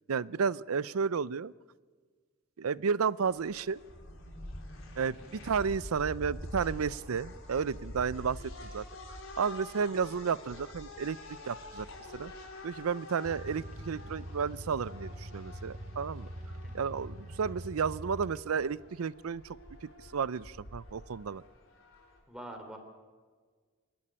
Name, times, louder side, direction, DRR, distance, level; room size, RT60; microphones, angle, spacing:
voice 1, 0.1-1.5 2.6-3.8 5.0-8.8 9.4-11.2 11.5-11.9 12.1-12.3 12.6-16.3 16.7-19.6 19.8-21.4, right 6 dB, 90° right, 21 dB, 0.5 m, -32 dB
sound 1, 3.2-22.2, left 1 dB, 70° left, 4.3 m, -47 dB
sound 2, 13.2-18.8, equal, 35° right, 0.9 m, -44 dB
voice 2, 22.3-22.8, right 1 dB, 5° right, 4 dB, 3.0 m, -45 dB
26.5 x 11.0 x 10.0 m, 1.5 s
head